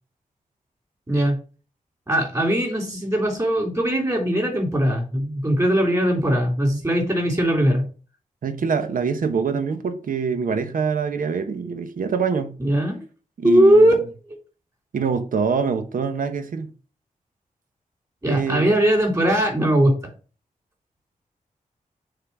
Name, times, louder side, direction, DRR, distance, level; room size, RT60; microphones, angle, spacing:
voice 1, 2.1-7.8 12.6-13.0 13.4-13.9 18.2-20.1, right 1 dB, 25° right, 3.4 m, -20 dB
voice 2, 8.4-12.5 13.4-14.0 14.9-16.7 18.3-18.7, right 5 dB, 80° right, 0.9 m, -25 dB
6.7 x 3.9 x 5.8 m
wide cardioid pair, 120°, 14 cm